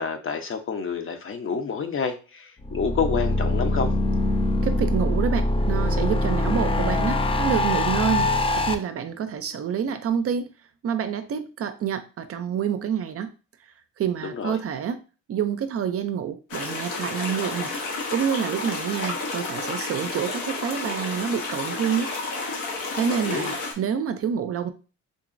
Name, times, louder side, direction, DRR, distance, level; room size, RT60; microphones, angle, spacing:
voice 1, 0.0-3.9 14.3-14.6 23.1-23.5, left 5 dB, 45° left, 6 dB, 0.7 m, -28 dB
sound 1, 2.6-8.7, left 2 dB, 20° left, 0.3 m, -23 dB
voice 2, 4.6-10.5 10.8-13.3 14.0-15.0 15.3-17.7 18.1-22.1 22.9-24.7, right 8 dB, 50° right, 9 dB, 0.5 m, -27 dB
sound 2, 16.5-23.7, left 3 dB, 90° left, 1.0 m, -31 dB
3.8 x 2.9 x 2.5 m, 0.34 s
cardioid pair, 90°, 30 cm